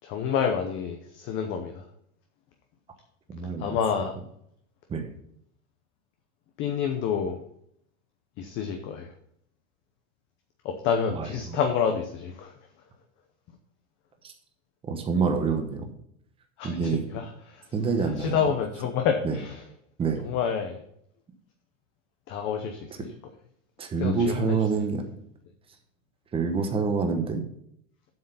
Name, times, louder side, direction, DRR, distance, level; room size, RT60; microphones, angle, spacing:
voice 1, 0.0-1.8 3.6-4.1 6.6-7.4 8.4-9.1 10.6-12.5 16.6-19.6 20.2-20.8 22.3-23.1 24.0-24.8, left 7 dB, 30° left, 5 dB, 0.8 m, -29 dB
voice 2, 3.3-3.8 4.9-5.1 11.2-11.3 14.2-14.3 14.9-15.9 16.6-17.0 17.7-18.3 19.2-19.3 20.0-20.2 23.8-25.0 26.3-27.4, right 5 dB, 15° right, 5 dB, 1.0 m, -26 dB
7.9 x 6.4 x 5.6 m, 0.71 s
supercardioid pair, 160°, 41 cm